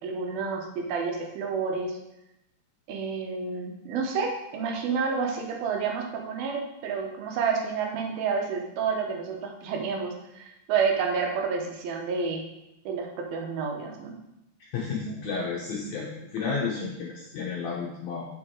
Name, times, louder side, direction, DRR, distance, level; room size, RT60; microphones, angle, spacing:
voice 1, 0.0-2.0 2.9-12.5 12.9-14.1, right 5 dB, 90° right, 1 dB, 3.0 m, -29 dB
voice 2, 14.6-18.3, left 5 dB, 65° left, -4 dB, 2.1 m, -32 dB
7.3 x 6.3 x 4.7 m, 0.88 s
omnidirectional pair, 4.2 m